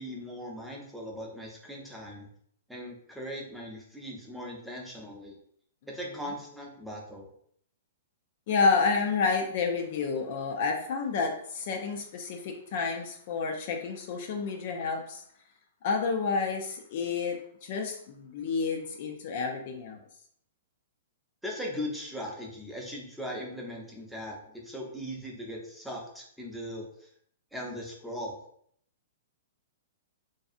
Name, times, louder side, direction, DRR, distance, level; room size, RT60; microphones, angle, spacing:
voice 1, 0.0-2.3 2.7-5.4 5.9-7.3 21.4-24.4 24.6-27.1 27.5-28.4, equal, ahead, -2 dB, 0.6 m, -39 dB
voice 2, 8.5-15.2 15.8-20.0, left 4 dB, 50° left, 3 dB, 0.4 m, -30 dB
2.6 x 2.3 x 2.5 m, 0.64 s
figure-of-eight pair, 115°, 0 cm